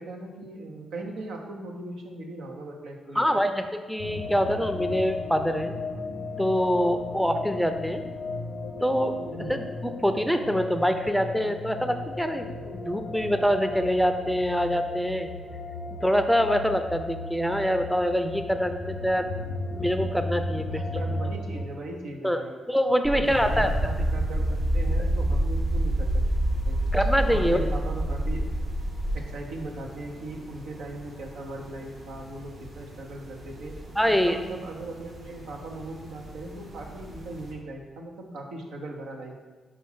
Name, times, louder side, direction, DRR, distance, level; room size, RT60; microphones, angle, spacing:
voice 1, 0.0-3.5 9.2-9.6 20.7-22.6 23.1-26.2 26.6-26.8 27.3-28.5 29.1-33.7 34.2-39.5, right 2 dB, 75° right, 1 dB, 0.8 m, -38 dB
voice 2, 3.2-5.7 6.4-8.0 8.8-9.1 9.5-15.3 16.0-19.3 19.7-20.8 22.2-22.4 22.7-23.7 26.9-27.6 34.0-34.4, equal, ahead, 7 dB, 0.5 m, -25 dB
sound 1, 4.0-21.7, left 2 dB, 70° left, 0.6 m, -35 dB
sound 2, 23.0-29.2, right 1 dB, 40° right, 1.3 m, -26 dB
sound 3, 23.2-37.5, right 1 dB, 55° right, 1.6 m, -45 dB
5.0 x 4.3 x 5.6 m, 1.4 s
hypercardioid pair, 45°, 0 cm